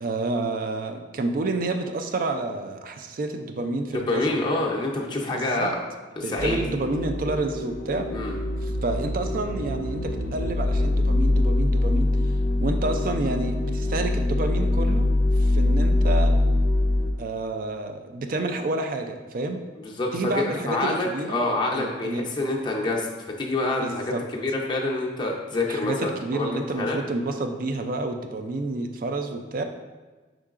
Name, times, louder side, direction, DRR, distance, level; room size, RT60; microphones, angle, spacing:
voice 1, 0.0-4.3 5.3-5.7 6.2-8.1 8.6-12.1 12.6-16.4 17.2-19.6 20.1-21.4 21.7-22.3 23.7-24.2 25.7-29.6, right 2 dB, 50° right, 6 dB, 0.4 m, -29 dB
voice 2, 4.1-5.8 6.2-6.6 8.1-8.3 19.8-23.1 23.4-24.1 24.3-27.0, left 2 dB, 25° left, -2 dB, 0.5 m, -27 dB
sound 1, 6.4-17.1, left 2 dB, 85° left, 0.5 m, -23 dB
5.4 x 3.8 x 2.4 m, 1.3 s
head